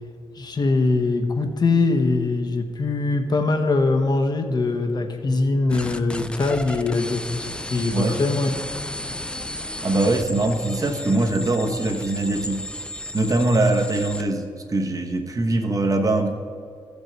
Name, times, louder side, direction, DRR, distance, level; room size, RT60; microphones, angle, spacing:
voice 1, 0.3-7.3 7.7-8.5, left 3 dB, 50° left, 5 dB, 1.0 m, -22 dB
sound 1, 5.7-14.3, left 1 dB, 10° left, 0.4 m, -33 dB
voice 2, 9.8-12.7 13.1-16.3, right 2 dB, 40° right, 4 dB, 1.1 m, -22 dB
14.5 x 5.3 x 4.6 m, 2.4 s
cardioid pair, 75°, 9 cm